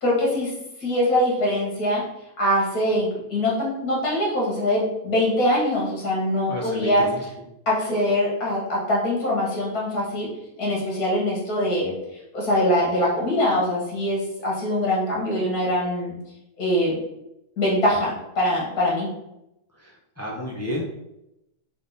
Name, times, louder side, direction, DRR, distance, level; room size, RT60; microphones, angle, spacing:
voice 1, 0.0-0.5 0.8-2.0 2.4-7.1 7.7-10.3 10.6-11.9 12.3-16.1 16.6-17.0 17.6-19.1, left 1 dB, 75° left, -4 dB, 1.9 m, -23 dB
voice 2, 6.5-7.3 19.7-20.8, left 1 dB, 20° left, -3 dB, 0.4 m, -32 dB
3.8 x 3.5 x 3.9 m, 0.88 s
omnidirectional pair, 1.6 m